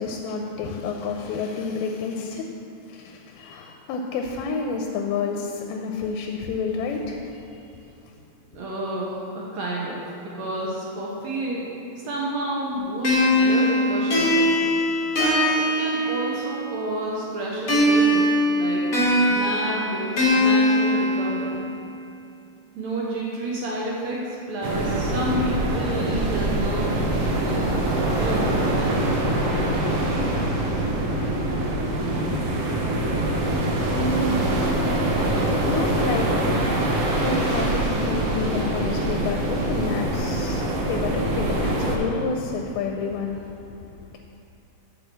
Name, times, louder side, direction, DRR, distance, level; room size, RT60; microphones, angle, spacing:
voice 1, 0.0-2.5 2.9-7.6 33.9-36.3 37.2-43.5 44.1-44.2, left 4 dB, 90° left, 2 dB, 2.6 m, -29 dB
voice 2, 8.5-10.0 10.3-14.4 15.1-18.3 18.5-18.8 19.2-21.6 22.7-27.8 28.1-29.0 29.3-30.3, right 1 dB, 70° right, -4 dB, 1.8 m, -30 dB
sound 1, 13.0-16.7 17.7-21.7, left 1 dB, 55° left, 0.9 m, -21 dB
sound 2, 24.6-42.0, right 1 dB, 85° right, 1.4 m, -24 dB
8.0 x 4.9 x 7.4 m, 2.7 s
omnidirectional pair, 4.3 m